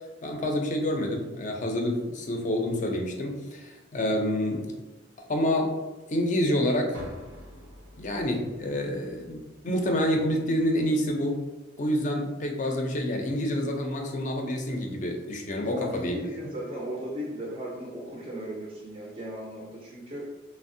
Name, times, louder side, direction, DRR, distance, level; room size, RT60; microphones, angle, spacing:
voice 1, 0.2-4.7 5.3-5.7 6.1-7.0 8.0-11.4 11.8-16.2, left 1 dB, 40° left, 2 dB, 0.4 m, -28 dB
sound 1, 6.9-10.9, equal, 75° right, 0.6 m, -48 dB
voice 2, 15.6-20.3, equal, 30° right, -3 dB, 0.4 m, -36 dB
3.3 x 2.0 x 2.6 m, 1.2 s
head